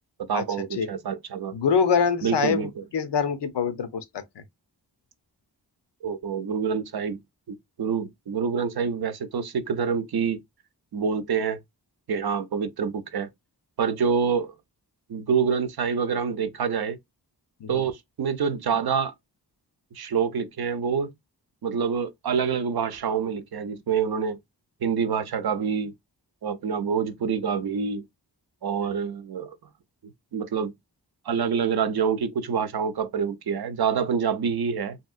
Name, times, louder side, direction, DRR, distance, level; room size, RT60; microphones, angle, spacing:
voice 1, 0.3-1.5 2.2-2.8 6.0-7.2 7.5-10.4 10.9-11.6 12.1-13.3 13.8-14.5 15.1-17.0 17.7-19.1 19.9-21.1 21.6-24.4 24.8-25.9 26.4-28.0 28.6-29.5 30.3-30.7 31.3-35.0, right 6 dB, 65° right, 0.6 m, -26 dB
voice 2, 1.5-4.4 17.6-17.8 28.8-28.9, left 6 dB, 80° left, 0.7 m, -25 dB
2.8 x 2.8 x 2.3 m
cardioid pair, 55°, 41 cm